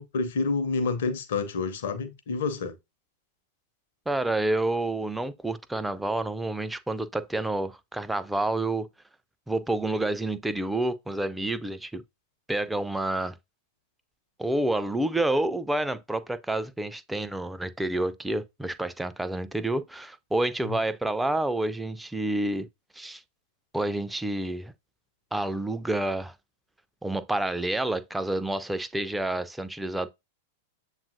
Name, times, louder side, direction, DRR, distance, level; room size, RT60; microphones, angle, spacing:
voice 1, 0.0-2.7 20.6-20.8, left 4 dB, 55° left, 0.7 m, -28 dB
voice 2, 4.1-8.9 9.5-12.0 12.5-13.4 14.4-22.7 22.9-23.2 23.7-24.7 25.3-26.3 27.0-30.1, right 2 dB, 5° right, 0.3 m, -29 dB
7.1 x 2.4 x 2.6 m
figure-of-eight pair, 95°, 0 cm